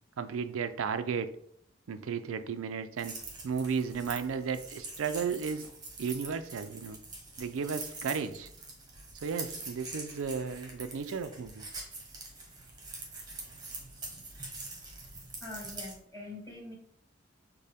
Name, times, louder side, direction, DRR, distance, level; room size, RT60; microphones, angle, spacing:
voice 1, 0.2-1.3 1.9-3.2 3.4-5.7 6.0-7.0 7.4-8.5 9.2-11.6, right 6 dB, 85° right, 11 dB, 0.4 m, -34 dB
sound 1, 3.0-15.9, right 3 dB, 20° right, 0.9 m, -44 dB
voice 2, 14.8-16.7, left 2 dB, 15° left, -6 dB, 1.8 m, -45 dB
6.4 x 2.2 x 3.5 m, 0.68 s
head